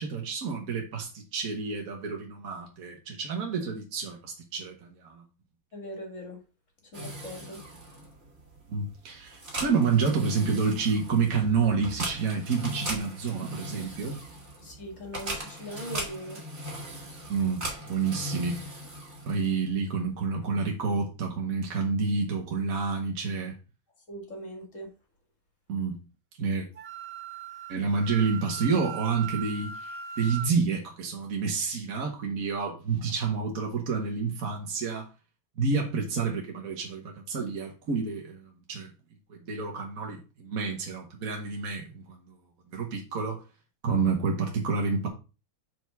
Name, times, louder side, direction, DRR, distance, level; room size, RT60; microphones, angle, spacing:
voice 1, 0.0-5.2 8.7-14.2 17.3-18.6 19.2-23.5 25.7-26.0 26.4-26.7 27.7-35.1 35.6-38.9 39.3-42.2 42.7-43.4 43.8-45.1, right 5 dB, 50° right, 1.5 m, -29 dB
voice 2, 5.7-6.4 6.9-7.6 14.6-16.4 24.1-24.9, equal, 40° left, 2.4 m, -40 dB
sound 1, 6.9-19.7, right 1 dB, 35° right, 2.4 m, -39 dB
Wind instrument woodwind instrument, 26.8-30.5, right 7 dB, 75° right, 0.5 m, -39 dB
5.1 x 4.7 x 6.0 m
omnidirectional pair, 2.0 m